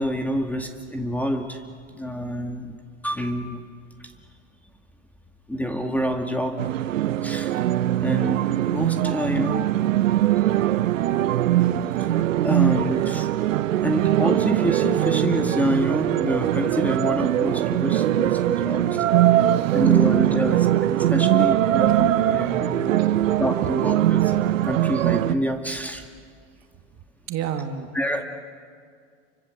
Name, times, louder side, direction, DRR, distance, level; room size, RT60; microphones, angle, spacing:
voice 1, 0.0-2.8 3.0-3.6 4.0-4.1 5.5-6.6 7.2-7.6 8.0-8.4 8.7-9.7 10.4-10.5 12.4-13.3 13.8-19.0 19.3-19.4 19.7-23.0 23.4-26.1 27.9-28.2, equal, 5° left, 4 dB, 2.1 m, -27 dB
sound 1, 6.6-25.4, right 13 dB, 75° right, 1.1 m, -21 dB
voice 2, 18.4-19.8 20.4-20.6 21.3-21.4 23.0-23.4 27.3-27.9, right 8 dB, 40° right, 5 dB, 2.6 m, -34 dB
30.0 x 24.5 x 7.8 m, 2.1 s
hypercardioid pair, 100°, 39 cm